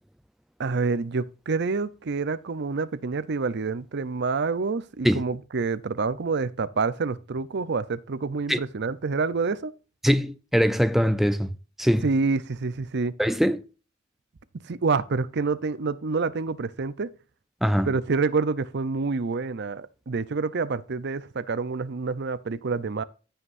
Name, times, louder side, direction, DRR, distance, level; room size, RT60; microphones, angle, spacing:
voice 1, 0.6-9.7 12.0-13.1 14.7-17.1 17.8-23.0, right 4 dB, 55° right, 0.6 m, -27 dB
voice 2, 10.0-11.5 11.8-12.1 13.2-13.6 17.6-17.9, equal, ahead, 0.5 m, -22 dB
15.0 x 5.8 x 2.6 m
head